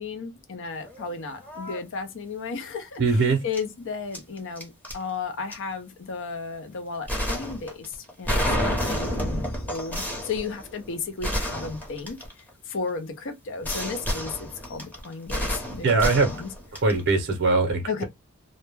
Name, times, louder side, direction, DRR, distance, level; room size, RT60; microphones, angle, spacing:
voice 1, 0.0-12.2 12.7-16.5 17.9-18.0, left 4 dB, 60° left, 0.6 m, -34 dB
sound 1, 0.8-1.1 1.4-1.8 3.5-3.6 4.1-5.0 5.5-5.6 7.1-12.7 13.6-17.1, equal, 10° left, 0.7 m, -30 dB
voice 2, 3.0-3.4 15.8-16.3 16.8-18.0, right 3 dB, 50° right, 0.6 m, -21 dB
2.1 x 2.0 x 3.1 m
head